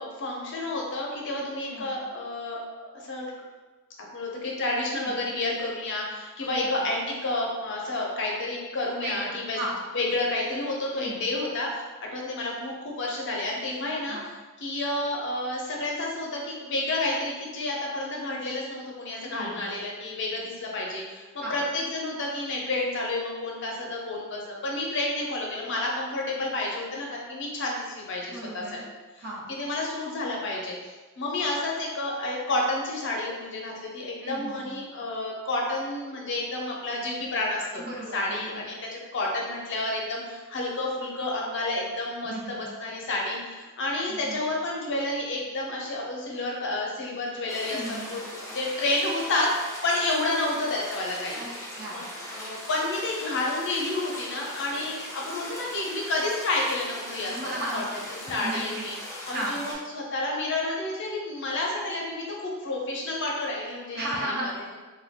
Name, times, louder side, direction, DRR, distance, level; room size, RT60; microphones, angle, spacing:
voice 1, 0.0-3.3 4.1-9.6 9.9-11.7 12.0-14.2 14.6-28.6 29.5-30.7 31.2-37.8 38.1-51.4 51.9-52.0 52.3-57.8 58.3-59.0 59.3-64.5, left 2 dB, 60° left, -2 dB, 0.6 m, -30 dB
voice 2, 1.7-2.0 4.9-5.2 6.4-6.7 9.0-9.8 10.9-11.3 14.1-14.2 19.2-19.7 21.4-21.6 28.3-28.8 29.2-29.5 34.2-34.7 37.7-38.6 42.2-42.6 44.1-44.4 47.6-48.1 51.3-51.5 51.7-52.1 54.7-54.9 57.3-58.9 59.2-59.6 63.9-64.8, right 1 dB, 50° right, -3 dB, 0.6 m, -36 dB
sound 1, 47.5-59.7, equal, 15° left, 0.6 m, -39 dB
2.4 x 2.2 x 3.4 m, 1.3 s
head